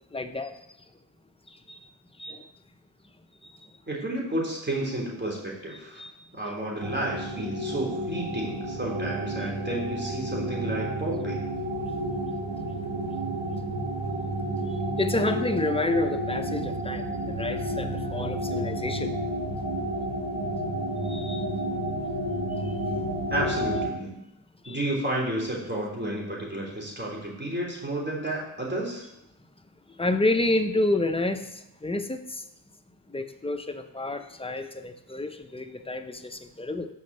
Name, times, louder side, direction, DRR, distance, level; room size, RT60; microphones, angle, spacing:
voice 1, 0.1-0.6 1.5-1.9 2.2-2.4 3.4-3.7 5.7-6.1 9.4-9.8 14.6-19.1 21.0-21.5 22.5-22.8 24.6-24.8 30.0-32.4 33.1-36.9, left 2 dB, 10° left, 7 dB, 0.8 m, -30 dB
voice 2, 3.9-6.0 6.3-11.4 23.3-24.2 24.7-29.0, right 1 dB, 20° right, -3 dB, 3.4 m, -31 dB
sound 1, 6.8-23.9, right 1 dB, 70° right, 1.5 m, -31 dB
6.5 x 5.3 x 6.8 m, 0.83 s
cardioid pair, 50°, 47 cm